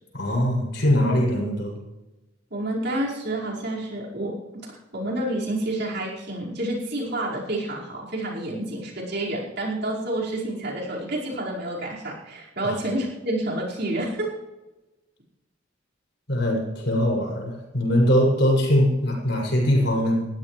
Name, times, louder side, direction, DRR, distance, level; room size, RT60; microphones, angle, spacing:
voice 1, 0.1-1.8 12.6-12.8 16.3-20.3, equal, 65° left, -1 dB, 7.0 m, -22 dB
voice 2, 2.5-4.4 4.7-14.3, right 1 dB, 60° right, -4 dB, 5.1 m, -29 dB
21.0 x 15.0 x 3.3 m, 1.0 s
head